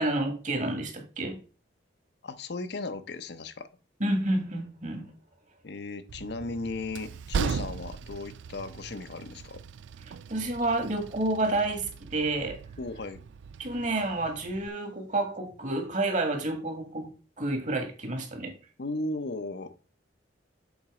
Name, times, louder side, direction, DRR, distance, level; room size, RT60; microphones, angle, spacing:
voice 1, 0.0-1.4 4.0-5.1 10.3-12.6 13.6-18.5, right 2 dB, 45° right, 1.7 m, -29 dB
voice 2, 2.2-3.7 5.6-9.6 12.8-13.2 18.8-19.9, left 2 dB, 60° left, 0.7 m, -36 dB
Train, 6.1-14.7, right 6 dB, 75° right, 0.4 m, -38 dB
7.3 x 3.9 x 4.8 m
head